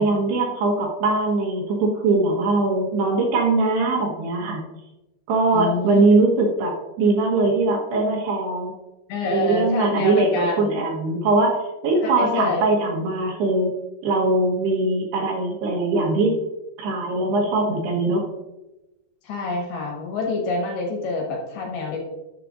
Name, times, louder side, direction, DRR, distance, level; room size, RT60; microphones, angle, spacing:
voice 1, 0.0-4.7 5.3-8.7 9.3-13.7 14.0-16.4 16.8-18.3, right 3 dB, 70° right, 0 dB, 3.1 m, -21 dB
voice 2, 5.5-6.0 9.1-10.8 12.0-12.7 19.2-22.0, left 4 dB, 65° left, 0 dB, 3.1 m, -27 dB
12.5 x 7.1 x 2.5 m, 1.0 s
omnidirectional pair, 5.3 m